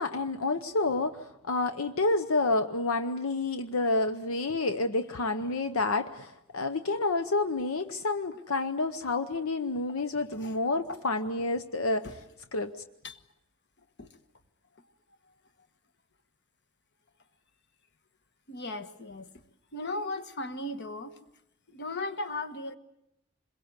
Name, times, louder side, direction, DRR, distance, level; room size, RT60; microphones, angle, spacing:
voice 1, 0.0-12.1 12.5-12.7, left 3 dB, 80° left, 9 dB, 0.9 m, -29 dB
voice 2, 18.5-19.3 19.7-21.2 21.7-22.8, left 2 dB, 55° left, 9 dB, 1.4 m, -37 dB
27.0 x 22.0 x 8.1 m, 0.84 s
head